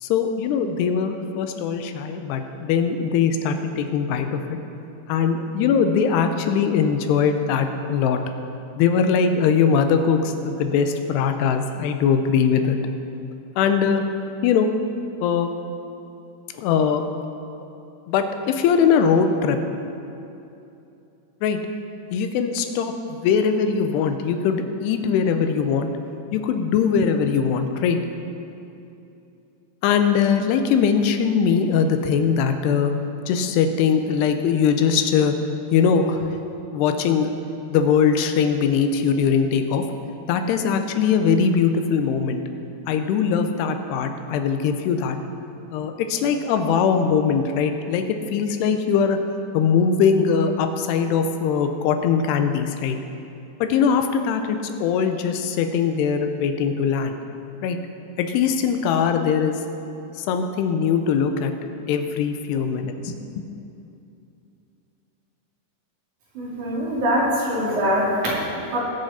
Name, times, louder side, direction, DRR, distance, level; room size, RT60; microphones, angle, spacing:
voice 1, 0.0-4.6 5.1-8.2 8.8-12.8 13.6-14.0 14.4-14.7 15.2-15.5 16.5-17.0 18.1-19.6 21.4-21.6 22.1-25.9 26.3-28.0 29.8-32.9 33.3-35.3 35.7-36.3 36.7-37.3 37.7-39.8 40.3-42.4 42.9-45.2 45.7-48.1 48.3-49.2 49.5-53.0 53.6-57.2 57.6-57.8 58.2-59.6 60.2-61.5 61.9-63.2, left 6 dB, 80° left, 7 dB, 2.7 m, -21 dB
voice 2, 66.3-68.8, equal, 50° right, -7 dB, 3.5 m, -23 dB
20.0 x 6.7 x 4.2 m, 2.8 s
omnidirectional pair, 5.0 m